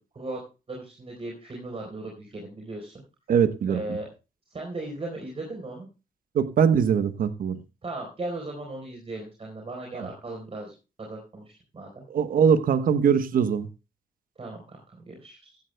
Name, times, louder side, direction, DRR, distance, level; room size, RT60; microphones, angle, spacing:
voice 1, 0.7-3.0 3.7-4.1 4.5-5.9 7.8-10.7 11.0-12.0 14.4-15.6, right 2 dB, 40° right, 4.0 m, -37 dB
voice 2, 3.3-4.0 6.3-7.6 12.1-13.7, right 7 dB, 70° right, 1.0 m, -22 dB
14.5 x 14.5 x 2.2 m
cardioid pair, 75°, 15 cm